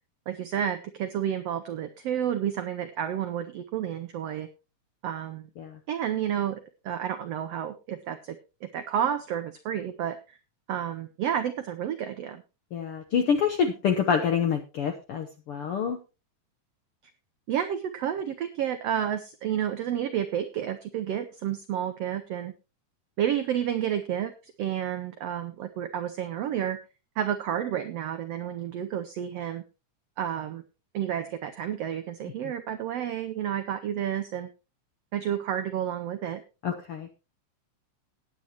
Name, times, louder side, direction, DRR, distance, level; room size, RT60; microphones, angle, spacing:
voice 1, 0.3-4.5 5.0-5.5 5.9-8.4 8.6-10.4 10.7-12.4 17.5-22.5 23.2-26.8 27.2-29.6 30.2-30.6 30.9-34.5 35.1-36.4, right 10 dB, 85° right, 8 dB, 1.4 m, -30 dB
voice 2, 12.7-16.0 36.6-37.1, left 7 dB, 75° left, 5 dB, 1.3 m, -27 dB
18.0 x 8.6 x 2.9 m, 0.30 s
omnidirectional pair, 3.8 m